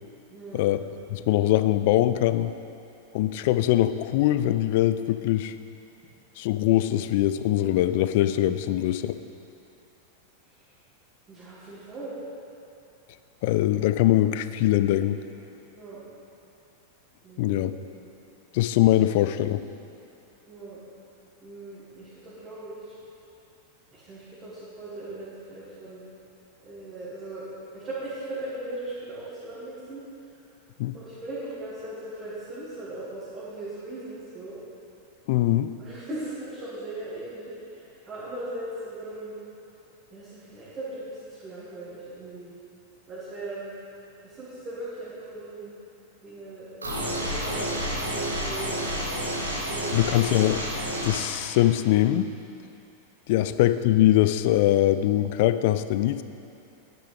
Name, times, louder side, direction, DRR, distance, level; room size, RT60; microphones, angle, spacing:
voice 1, 0.3-0.8 11.3-12.1 15.7-16.0 17.2-18.1 20.5-20.8 21.4-22.9 23.9-26.0 26.6-27.4 27.7-30.0 30.9-34.6 35.8-39.4 40.1-42.6 43.1-43.7 44.2-45.7 46.2-46.7 47.1-50.1 53.3-53.5, right 2 dB, 25° right, -11 dB, 2.5 m, -39 dB
voice 2, 1.1-2.5 3.1-5.5 6.4-9.2 13.4-15.2 17.4-17.7 18.5-19.6 30.8-31.0 35.3-35.7 49.9-50.6 51.0-52.3 53.3-56.2, left 14 dB, 50° left, 13 dB, 0.3 m, -22 dB
sound 1, 46.8-51.2, equal, 80° right, 1.5 m, -30 dB
10.0 x 9.2 x 3.6 m, 2.7 s
figure-of-eight pair, 90°, 0 cm